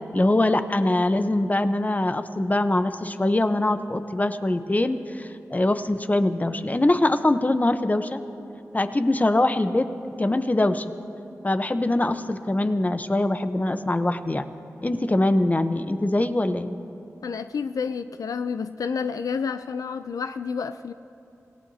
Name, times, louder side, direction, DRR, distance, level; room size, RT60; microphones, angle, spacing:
voice 1, 0.1-8.2 8.7-9.9 10.2-10.8 11.4-14.5 14.8-16.8, left 1 dB, 25° left, 10 dB, 0.8 m, -23 dB
voice 2, 17.2-20.9, left 5 dB, 80° left, 10 dB, 0.4 m, -29 dB
26.5 x 17.0 x 2.8 m, 2.9 s
cardioid pair, 40°, 6 cm